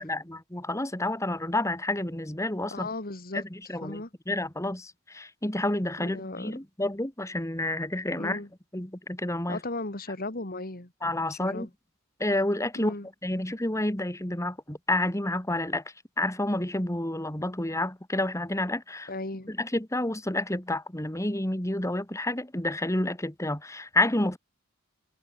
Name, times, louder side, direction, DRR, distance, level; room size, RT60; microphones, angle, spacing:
voice 1, 0.0-2.9 3.3-8.4 8.7-9.6 11.0-11.7 12.2-12.9 13.2-15.8 16.2-19.1 19.5-24.4, left 1 dB, 15° left, 2.3 m, -29 dB
voice 2, 2.7-3.4 3.8-4.1 6.0-6.6 8.2-8.5 9.5-10.9 11.3-11.7 12.7-13.1 19.1-19.5, left 2 dB, 45° left, 2.8 m, -36 dB
head